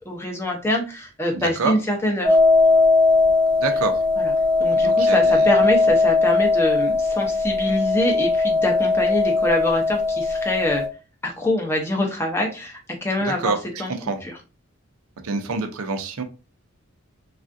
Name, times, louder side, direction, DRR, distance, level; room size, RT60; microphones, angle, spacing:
voice 1, 0.1-2.4 4.2-4.3 4.6-10.8 11.2-13.9 14.2-14.4, left 1 dB, 10° left, 1 dB, 0.5 m, -25 dB
voice 2, 1.3-1.7 3.6-4.0 4.7-5.5 13.2-13.6 14.0-14.2 15.2-16.2, right 4 dB, 90° right, 7 dB, 0.6 m, -26 dB
sound 1, 2.2-10.9, left 3 dB, 40° right, 0.7 m, -19 dB
3.3 x 2.4 x 2.5 m, 0.30 s
head